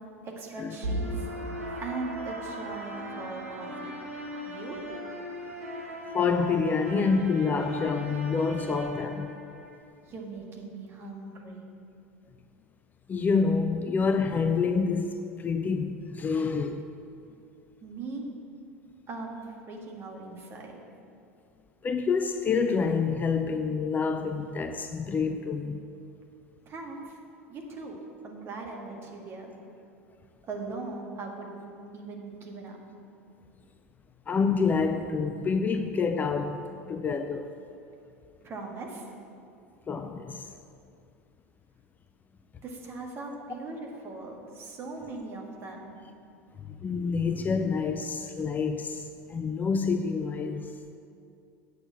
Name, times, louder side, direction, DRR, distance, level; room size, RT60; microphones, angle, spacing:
voice 1, 0.2-1.3 1.8-4.0 4.5-4.8 10.1-11.7 17.8-18.3 19.1-20.8 26.6-27.2 27.5-28.0 28.2-29.5 30.4-32.8 38.4-39.1 42.6-45.9, right 3 dB, 30° right, 1.9 m, -40 dB
sound 1, 0.8-9.8, equal, 75° right, 1.3 m, -37 dB
voice 2, 6.1-9.3 13.1-16.8 21.8-25.8 34.3-36.6 36.9-37.5 39.9-40.5 46.8-50.7, left 5 dB, 20° left, 0.5 m, -27 dB
8.6 x 6.6 x 7.7 m
figure-of-eight pair, 75°, 8 cm